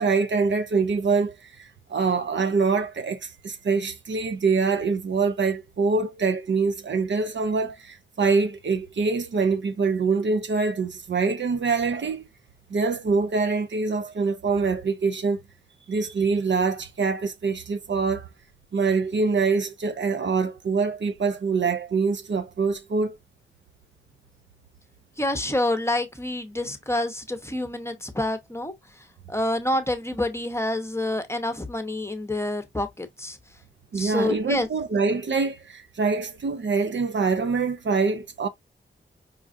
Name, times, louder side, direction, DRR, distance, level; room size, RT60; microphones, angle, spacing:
voice 1, 0.0-12.3 12.7-15.4 15.9-18.3 18.7-23.2 33.9-38.5, right 4 dB, 65° right, 0.7 m, -24 dB
voice 2, 25.2-28.7 29.3-33.4 33.9-34.7, left 1 dB, 10° left, 0.8 m, -27 dB
5.0 x 2.4 x 2.5 m
cardioid pair, 50°, 21 cm